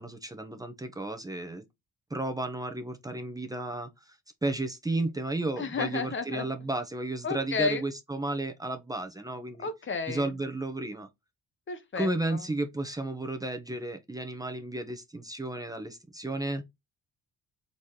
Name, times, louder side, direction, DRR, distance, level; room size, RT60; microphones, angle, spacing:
voice 1, 0.0-1.6 2.1-9.7 10.1-11.1 11.9-16.6, right 2 dB, 10° right, 1.0 m, -33 dB
voice 2, 5.6-6.4 7.2-7.8 9.6-10.3 11.7-12.4, left 6 dB, 40° left, 1.2 m, -32 dB
4.1 x 4.0 x 3.2 m
cardioid pair, 90°, 30 cm